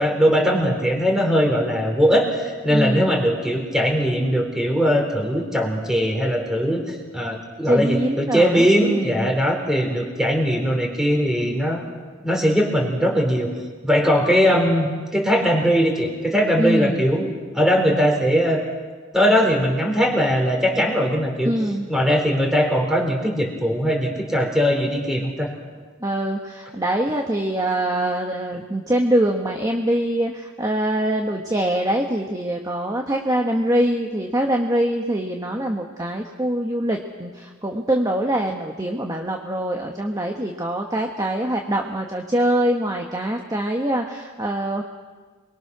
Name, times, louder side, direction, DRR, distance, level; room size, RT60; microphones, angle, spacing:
voice 1, 0.0-11.8 12.2-13.5 13.8-18.6 19.1-21.5 21.9-25.5, equal, 5° right, 2 dB, 3.9 m, -20 dB
voice 2, 2.7-3.1 7.6-9.3 16.6-17.1 21.4-21.9 26.0-44.8, right 1 dB, 20° right, 1 dB, 1.4 m, -24 dB
28.0 x 22.0 x 6.2 m, 1.5 s
head